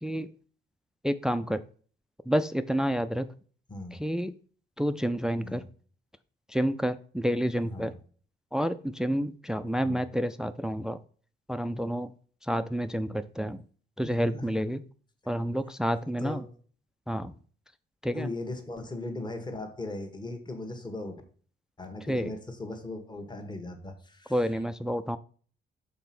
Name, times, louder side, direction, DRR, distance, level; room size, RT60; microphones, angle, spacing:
voice 1, 1.0-1.6 2.3-3.3 3.9-4.3 4.8-5.6 6.5-7.9 8.5-11.0 11.5-12.1 12.4-13.6 14.0-14.8 15.3-16.4 17.1-17.3 18.0-18.3 22.1-22.3 24.3-25.2, equal, 5° right, 12 dB, 0.4 m, -29 dB
voice 2, 15.9-16.5 18.1-21.2 21.8-24.4, left 2 dB, 20° left, 5 dB, 1.4 m, -38 dB
5.5 x 4.2 x 5.9 m, 0.43 s
cardioid pair, 90°, 20 cm